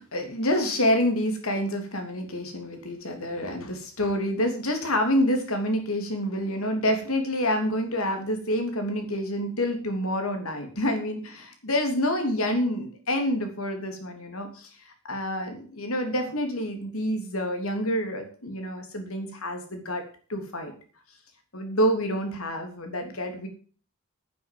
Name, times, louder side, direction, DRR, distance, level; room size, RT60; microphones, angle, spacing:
voice 1, 0.0-14.7 15.1-20.0 20.3-20.7 21.5-23.5, equal, 75° left, 5 dB, 3.2 m, -27 dB
9.5 x 8.5 x 7.7 m, 0.41 s
head